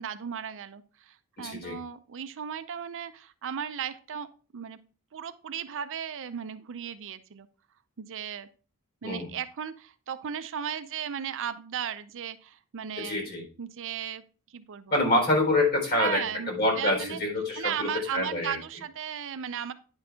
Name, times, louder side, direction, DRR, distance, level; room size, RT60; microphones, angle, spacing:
voice 1, 0.0-4.8 5.1-7.5 8.0-8.5 9.0-13.2 13.6-14.2 14.5-15.0 15.9-17.2 17.6-19.7, right 8 dB, 60° right, 11 dB, 0.5 m, -36 dB
voice 2, 1.4-1.8 9.0-9.4 13.0-13.4 14.9-18.6, left 2 dB, 45° left, 1 dB, 3.9 m, -26 dB
9.7 x 5.3 x 3.5 m, 0.37 s
head